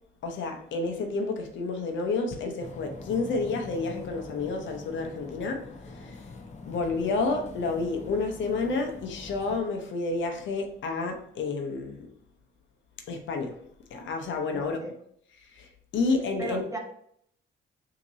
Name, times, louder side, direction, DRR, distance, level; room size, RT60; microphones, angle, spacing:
voice 1, 0.2-6.2 6.7-12.1 13.1-13.6 13.9-14.8 15.5-16.7, left 3 dB, 70° left, 0.9 m, -30 dB
sound 1, 2.6-9.6, left 3 dB, 35° left, 0.8 m, -44 dB
voice 2, 14.5-14.9 16.4-16.8, right 2 dB, 15° right, 1.2 m, -36 dB
5.9 x 2.9 x 2.7 m
cardioid pair, 90°, 20 cm